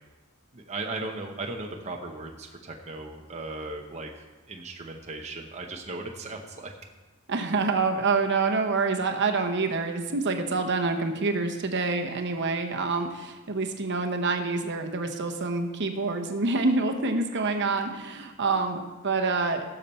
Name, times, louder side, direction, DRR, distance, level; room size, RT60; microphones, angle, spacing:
voice 1, 0.5-6.7, right 2 dB, 30° right, 1 dB, 0.9 m, -37 dB
voice 2, 7.3-19.8, right 3 dB, 55° right, 5 dB, 1.0 m, -27 dB
17.0 x 7.0 x 4.4 m, 1.2 s
head